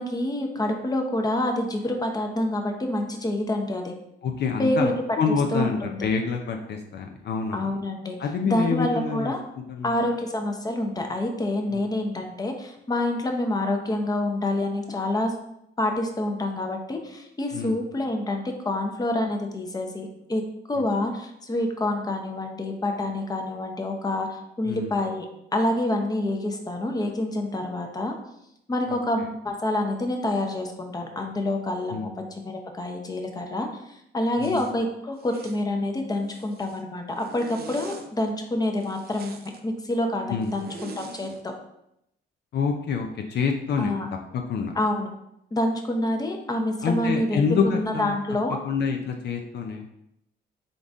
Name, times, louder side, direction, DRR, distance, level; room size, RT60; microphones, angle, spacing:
voice 1, 0.0-3.9 4.6-4.9 5.3-6.1 7.5-8.2 8.4-9.4 9.8-15.3 15.8-20.4 20.7-25.3 25.5-28.1 28.7-41.5 43.8-44.1 44.7-45.1 45.5-47.4 47.7-48.6, left 1 dB, 20° left, 3 dB, 0.7 m, -27 dB
voice 2, 4.2-7.7 8.2-9.3 9.7-10.0 11.7-11.9 17.5-17.8 20.8-20.9 24.6-24.9 28.9-29.0 31.9-32.1 34.4-34.7 40.3-40.5 42.5-43.9 44.3-44.7 46.8-48.2 48.6-49.9, left 5 dB, 60° left, 3 dB, 0.5 m, -27 dB
Zipper (clothing), 34.4-34.7 35.2-35.6 36.1-36.8 37.2-38.1 38.7-39.6 40.4-41.4, right 4 dB, 50° right, 0.6 m, -43 dB
3.9 x 3.8 x 3.5 m, 0.80 s
cardioid pair, 90°, 20 cm